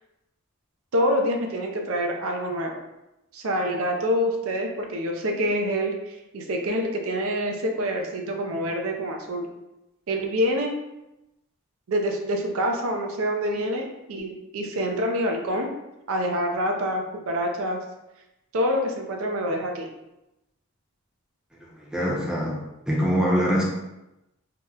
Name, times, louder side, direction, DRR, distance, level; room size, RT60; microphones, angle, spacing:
voice 1, 0.9-2.8 3.3-9.5 10.1-10.7 11.9-15.7 16.1-17.8 18.5-19.9, equal, 70° right, 2 dB, 0.4 m, -26 dB
voice 2, 21.8-22.6 22.9-23.6, equal, 5° right, -4 dB, 0.5 m, -23 dB
2.8 x 2.0 x 3.6 m, 0.93 s
head